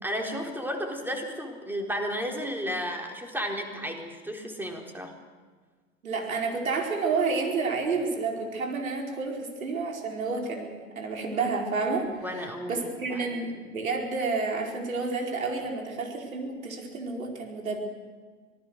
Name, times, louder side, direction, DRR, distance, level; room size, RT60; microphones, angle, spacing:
voice 1, 0.0-5.1 12.2-12.8 13.1-13.2, equal, 5° right, 2 dB, 4.0 m, -33 dB
voice 2, 6.0-17.8, right 4 dB, 85° right, 1 dB, 4.6 m, -30 dB
25.5 x 19.0 x 6.5 m, 1.5 s
hypercardioid pair, 90°, 40 cm